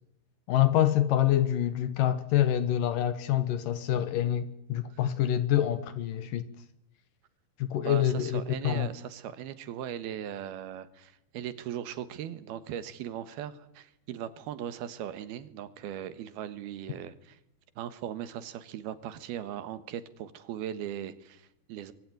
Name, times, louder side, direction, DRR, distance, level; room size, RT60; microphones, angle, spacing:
voice 1, 0.5-6.5 7.6-8.9, left 11 dB, 65° left, 2.6 m, -26 dB
voice 2, 7.8-17.4 17.8-21.9, right 10 dB, 80° right, 3.3 m, -39 dB
25.0 x 23.0 x 9.4 m
omnidirectional pair, 4.5 m